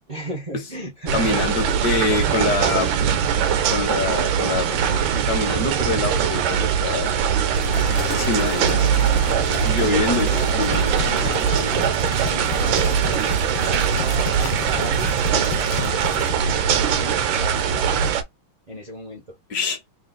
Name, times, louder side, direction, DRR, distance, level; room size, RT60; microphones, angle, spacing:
voice 1, 0.1-1.5 7.7-8.1 9.4-10.5 11.1-18.0 18.7-19.4, right 1 dB, 50° right, 0.4 m, -36 dB
voice 2, 1.1-2.9 3.7-7.2 8.1-8.8 9.6-11.0 19.5-19.8, left 3 dB, 60° left, 1.2 m, -25 dB
sound 1, 1.1-18.2, right 8 dB, 75° right, 1.4 m, -21 dB
sound 2, 7.5-16.3, left 10 dB, 90° left, 1.5 m, -32 dB
3.7 x 2.4 x 3.8 m
omnidirectional pair, 2.2 m